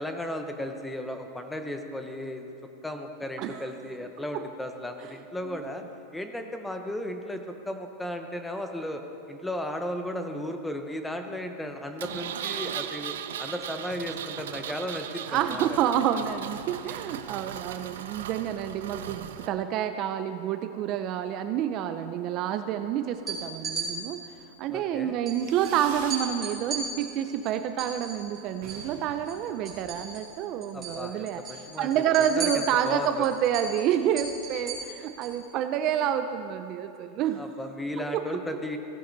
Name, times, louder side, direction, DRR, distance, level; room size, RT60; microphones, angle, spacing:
voice 1, 0.0-2.5 2.8-5.8 6.1-9.0 9.3-15.8 24.7-25.2 30.7-31.9 32.2-33.3 37.4-38.8, left 1 dB, 5° left, 5 dB, 0.7 m, -35 dB
Engine, 12.0-19.5, right 9 dB, 90° right, 0.6 m, -37 dB
voice 2, 15.3-24.2 24.6-37.5 38.0-38.4, right 10 dB, 35° right, 9 dB, 0.4 m, -28 dB
sound 1, 23.1-23.9 25.3-25.4 25.6-25.8 26.1-28.9 29.2-30.4 30.6-31.0 31.3-35.4, right 6 dB, 15° right, 3.4 m, -36 dB
Fireworks, 25.4-26.3 26.6-27.2 27.5-27.6 27.8-27.9 28.2-28.3 28.5-30.2, right 6 dB, 65° right, 1.8 m, -46 dB
16.5 x 9.7 x 3.9 m, 2.7 s
supercardioid pair, 165°, 0 cm